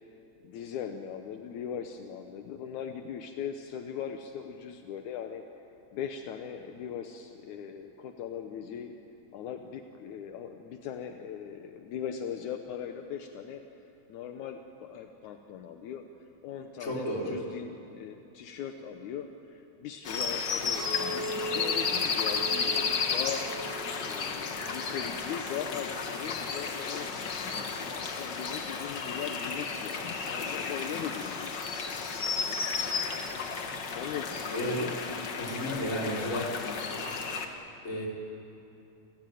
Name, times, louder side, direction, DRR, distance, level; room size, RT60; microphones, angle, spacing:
voice 1, 0.4-5.4 5.9-8.9 9.3-13.6 14.1-16.0 16.4-23.5 24.1-27.2 27.5-32.5 33.7-35.0 35.2-35.9, left 8 dB, 75° left, 6 dB, 2.3 m, -40 dB
voice 2, 16.8-17.4 34.5-34.8 35.4-36.6 37.8-38.1, equal, 25° left, -2 dB, 4.0 m, -32 dB
sound 1, 20.0-37.5, left 5 dB, 50° left, 1.5 m, -33 dB
Chink clink, 20.8-26.0, right 1 dB, 85° right, 3.5 m, -40 dB
28.5 x 15.5 x 9.3 m, 2.8 s
omnidirectional pair, 3.5 m